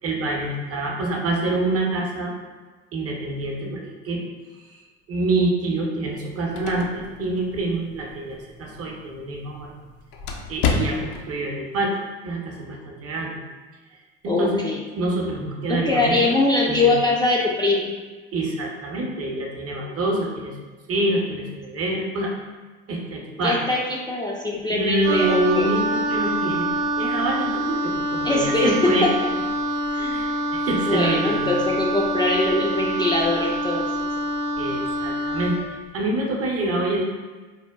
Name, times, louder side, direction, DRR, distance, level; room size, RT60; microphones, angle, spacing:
voice 1, 0.0-2.3 2.9-4.2 5.1-9.7 10.5-12.0 12.2-13.4 14.2-14.7 15.0-16.2 16.7-16.9 18.3-20.5 20.9-22.4 22.9-23.6 24.7-26.7 27.0-29.1 30.1-31.5 34.6-37.0, right 2 dB, 45° right, -1 dB, 0.8 m, -26 dB
sound 1, 6.1-11.3, left 5 dB, 65° left, 0.5 m, -31 dB
voice 2, 14.3-14.8 15.7-17.9 23.4-23.8 24.1-25.7 28.2-28.9 29.9-30.2 30.9-33.8, left 2 dB, 15° left, -4 dB, 0.4 m, -22 dB
Wind instrument woodwind instrument, 25.0-35.7, right 1 dB, 85° right, 0.6 m, -26 dB
4.0 x 2.2 x 2.2 m, 1.3 s
hypercardioid pair, 70°, 34 cm